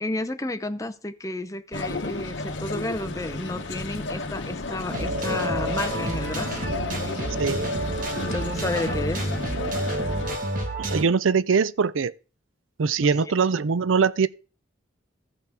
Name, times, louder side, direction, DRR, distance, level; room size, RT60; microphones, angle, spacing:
voice 1, 0.0-6.7 8.2-9.3, left 2 dB, 15° left, 0.6 m, -31 dB
sound 1, 1.7-10.4, left 2 dB, 70° left, 1.1 m, -33 dB
sound 2, 4.9-11.0, right 1 dB, 45° right, 1.6 m, -29 dB
voice 2, 10.8-12.1 12.8-14.3, right 5 dB, 90° right, 0.5 m, -22 dB
15.0 x 5.7 x 3.5 m
head